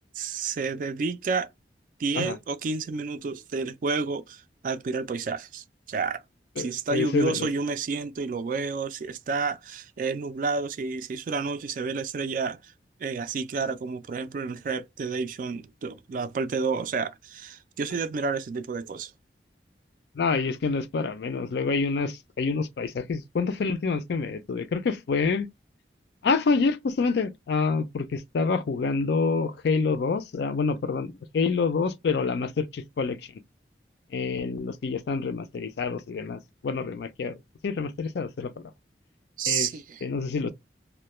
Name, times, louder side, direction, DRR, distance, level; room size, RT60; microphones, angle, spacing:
voice 1, 0.1-1.5 2.0-6.2 6.6-12.7 13.0-19.1 39.4-40.0, right 4 dB, 50° right, 0.3 m, -30 dB
voice 2, 6.6-7.5 20.1-25.5 26.2-33.3 34.1-37.4 37.6-38.5 39.5-39.7 40.0-40.5, left 4 dB, 70° left, 0.4 m, -27 dB
2.2 x 2.1 x 2.9 m
head